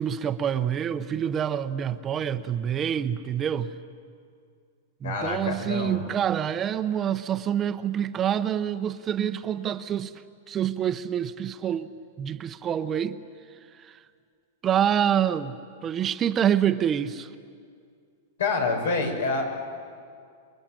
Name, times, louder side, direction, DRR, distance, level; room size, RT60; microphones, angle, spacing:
voice 1, 0.0-3.7 5.0-10.1 10.5-11.9 12.2-13.2 13.8-14.0 14.6-17.3, right 9 dB, 20° right, 0.8 m, -26 dB
voice 2, 5.0-6.0 18.4-19.5, left 3 dB, 85° left, 6.2 m, -27 dB
28.0 x 22.0 x 9.1 m
supercardioid pair, 145°, 0 cm